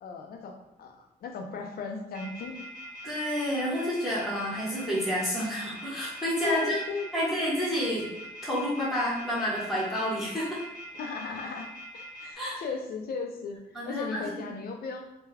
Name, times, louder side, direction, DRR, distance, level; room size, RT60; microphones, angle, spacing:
voice 1, 0.0-2.6 6.4-7.4 11.0-13.6 13.9-15.1, left 4 dB, 75° left, 3 dB, 0.5 m, -36 dB
sound 1, 2.1-12.3, left 1 dB, 55° right, 1.1 m, -43 dB
voice 2, 3.0-6.8 7.1-8.1 8.4-10.6 12.3-12.6 13.7-14.2, equal, ahead, -9 dB, 1.3 m, -29 dB
3.4 x 2.2 x 3.3 m, 0.92 s
cardioid pair, 80°, 16 cm